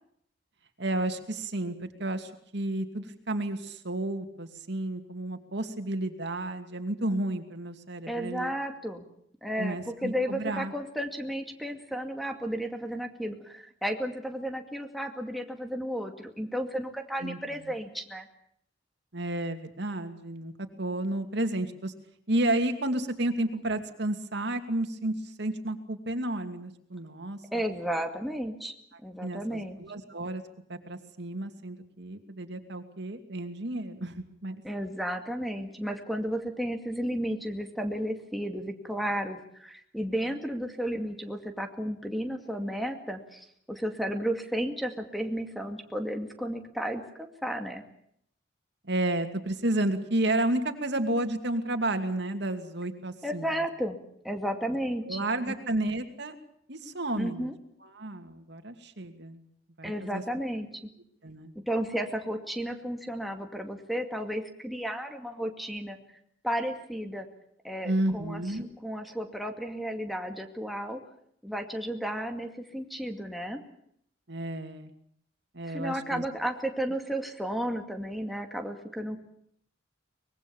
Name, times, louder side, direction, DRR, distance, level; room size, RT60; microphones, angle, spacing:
voice 1, 0.8-8.5 9.6-10.7 17.2-17.4 19.1-20.5 20.8-21.9 22.3-27.6 29.2-30.4 30.7-34.6 48.8-53.5 55.1-56.3 56.7-57.5 57.8-59.4 59.8-60.2 61.2-61.5 67.8-68.7 74.3-74.9 75.5-76.2, right 1 dB, 65° right, 7 dB, 2.5 m, -31 dB
voice 2, 8.1-9.1 9.4-18.3 27.5-28.7 29.0-29.8 34.6-47.8 53.2-54.0 54.2-55.5 57.2-57.6 59.8-60.7 61.7-66.0 66.4-67.3 67.6-68.4 68.8-71.0 71.4-73.6 75.6-79.2, equal, ahead, 3 dB, 2.3 m, -33 dB
24.0 x 21.5 x 7.2 m, 0.70 s
head